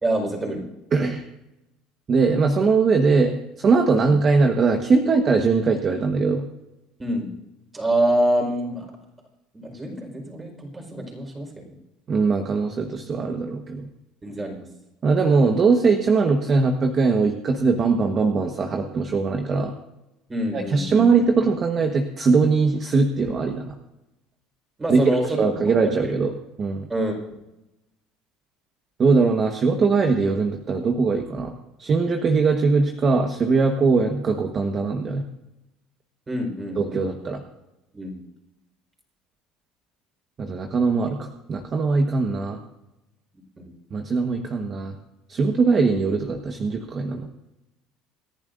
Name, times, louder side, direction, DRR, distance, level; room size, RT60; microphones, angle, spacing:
voice 1, 0.0-0.6 7.0-7.3 7.7-8.9 9.5-11.7 14.2-14.6 20.3-21.0 24.8-25.4 25.7-26.1 26.9-27.4 36.3-37.3 37.9-38.2 43.6-43.7, right 1 dB, 20° right, 2 dB, 4.7 m, -26 dB
voice 2, 0.9-1.2 2.1-6.5 12.1-13.9 15.0-19.7 20.5-23.7 24.9-26.3 26.6-26.9 29.0-31.5 31.8-35.2 36.8-37.4 40.4-42.6 43.9-44.9 45.3-47.3, right 4 dB, 35° right, 4 dB, 1.3 m, -21 dB
27.5 x 11.0 x 2.6 m, 0.96 s
supercardioid pair, 110°, 0 cm